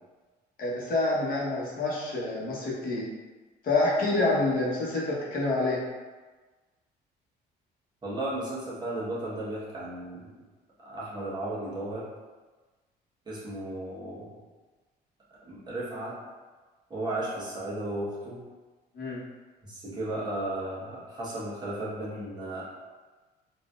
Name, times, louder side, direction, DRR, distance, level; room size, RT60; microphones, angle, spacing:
voice 1, 0.6-3.1 3.6-5.8 18.9-19.2, left 2 dB, 60° left, -6 dB, 1.2 m, -27 dB
voice 2, 8.0-10.3 10.8-12.1 13.3-14.4 15.4-16.1 16.9-18.4 19.6-22.7, right 1 dB, 25° right, -8 dB, 1.2 m, -34 dB
4.0 x 2.6 x 2.4 m, 1.3 s
cardioid pair, 110°, 17 cm